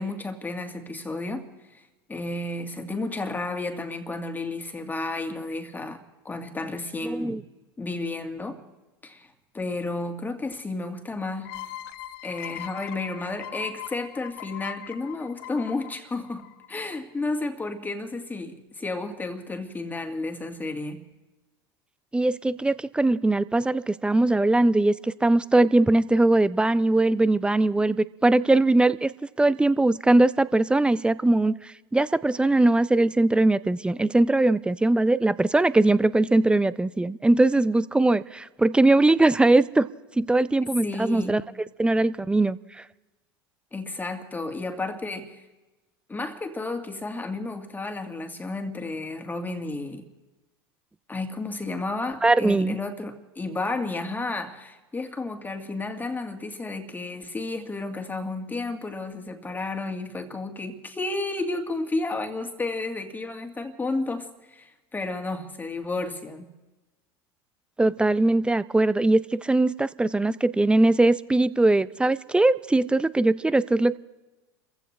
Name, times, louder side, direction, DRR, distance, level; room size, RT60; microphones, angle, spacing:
voice 1, 0.0-1.4 1.7-1.8 2.1-7.4 7.8-8.6 9.0-11.7 12.2-21.1 40.8-41.4 43.7-45.4 46.1-50.1 51.1-66.5, left 2 dB, 15° left, 2.0 m, -32 dB
voice 2, 7.0-7.4 22.1-28.0 28.2-29.1 29.4-39.9 40.2-41.4 41.8-42.6 52.2-52.8 67.8-74.0, right 2 dB, 5° right, 0.5 m, -21 dB
sound 1, 11.4-16.9, left 13 dB, 65° left, 0.7 m, -40 dB
29.0 x 15.5 x 3.2 m
hypercardioid pair, 85°, 13 cm